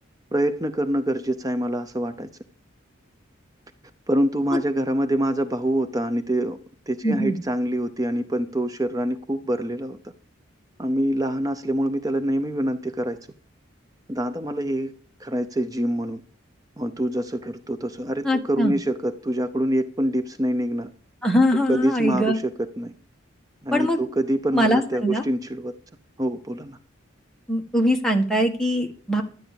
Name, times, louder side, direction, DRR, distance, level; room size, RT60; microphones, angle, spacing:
voice 1, 0.3-2.3 4.1-6.6 6.9-10.0 10.8-13.2 14.1-14.9 15.2-16.2 16.8-20.9 21.7-22.9 23.6-25.7 26.2-26.8, right 1 dB, 20° right, 0.6 m, -25 dB
voice 2, 7.0-7.4 18.2-18.7 21.2-22.4 23.7-24.0 24.5-25.2 27.5-29.2, equal, 5° left, 1.7 m, -22 dB
12.5 x 9.0 x 6.9 m
head